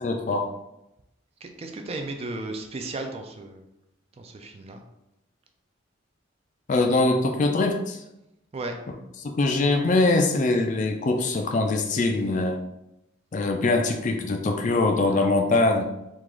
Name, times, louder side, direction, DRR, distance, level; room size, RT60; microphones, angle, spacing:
voice 1, 0.0-0.5 6.7-8.0 9.2-12.6 13.3-15.8, left 2 dB, 40° left, 4 dB, 0.4 m, -23 dB
voice 2, 1.4-3.7 4.2-4.8 8.5-8.8, right 2 dB, 30° right, 4 dB, 0.3 m, -35 dB
3.7 x 2.3 x 3.0 m, 0.87 s
head